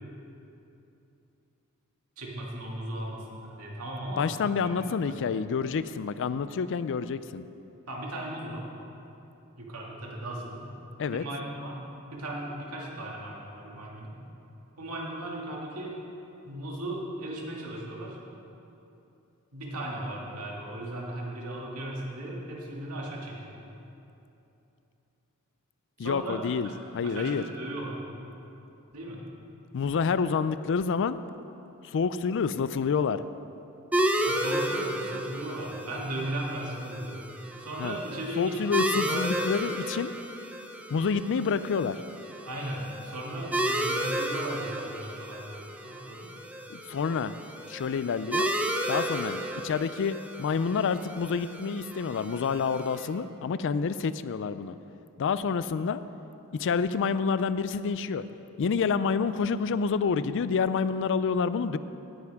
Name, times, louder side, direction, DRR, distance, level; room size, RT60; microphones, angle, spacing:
voice 1, 2.2-5.1 7.9-8.7 9.6-10.7 11.1-11.8 12.1-14.2 14.8-16.0 16.5-18.2 19.5-23.5 26.0-26.7 27.0-28.0 28.9-29.3 34.2-37.3 37.6-38.6 38.9-39.2 42.4-46.3, right 1 dB, 85° right, -3 dB, 2.3 m, -37 dB
voice 2, 4.2-7.5 11.0-11.2 26.0-27.4 29.7-31.2 31.8-33.2 37.8-38.0 38.4-40.1 40.9-42.0 46.7-47.4 47.7-48.5 48.9-54.7 55.2-56.0 56.5-58.2 58.6-61.8, left 5 dB, 60° left, 14 dB, 0.4 m, -28 dB
sound 1, 33.9-53.1, right 1 dB, 5° right, 0.7 m, -33 dB
18.0 x 9.5 x 3.6 m, 2.9 s
head